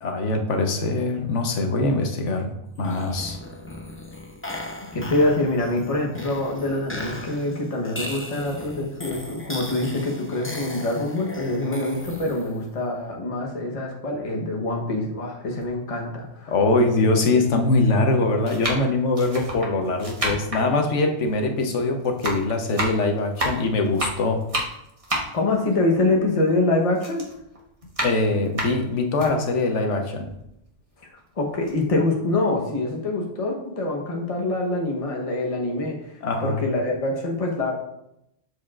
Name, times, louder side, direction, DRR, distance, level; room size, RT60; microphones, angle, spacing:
voice 1, 0.0-3.4 16.5-24.5 28.0-30.3 36.2-36.6, left 2 dB, 70° left, 4 dB, 1.2 m, -22 dB
sound 1, 2.8-12.7, left 1 dB, 15° left, 0.6 m, -37 dB
voice 2, 4.9-16.5 20.3-20.4 25.3-27.2 31.4-37.7, left 2 dB, 30° left, 0 dB, 1.0 m, -25 dB
sound 2, 15.6-15.7 16.6-16.7 17.7-17.9 18.4-21.8 22.0-26.6 27.0-29.3 29.8-29.9 30.2-31.2 31.5-31.7, right 1 dB, 30° right, 1.2 m, -30 dB
12.0 x 4.8 x 2.4 m, 0.82 s
omnidirectional pair, 1.3 m